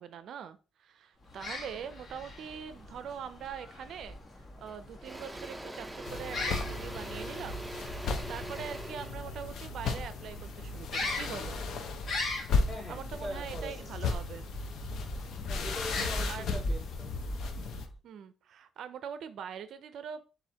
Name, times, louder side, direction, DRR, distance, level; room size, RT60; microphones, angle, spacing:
voice 1, 0.0-7.7 8.0-11.6 12.9-14.5 16.0-16.4 18.0-20.2, right 8 dB, 70° right, 0.4 m, -43 dB
sound 1, 1.2-18.0, left 1 dB, 45° left, 1.4 m, -40 dB
Engine / Drill, 4.1-4.3 4.7-10.8, right 1 dB, 10° right, 0.5 m, -43 dB
sound 2, 6.0-17.9, left 4 dB, 70° left, 0.6 m, -36 dB
voice 2, 12.7-13.9 15.5-17.1, equal, 15° left, 2.5 m, -42 dB
7.2 x 2.5 x 2.8 m
cardioid pair, 90°, 0 cm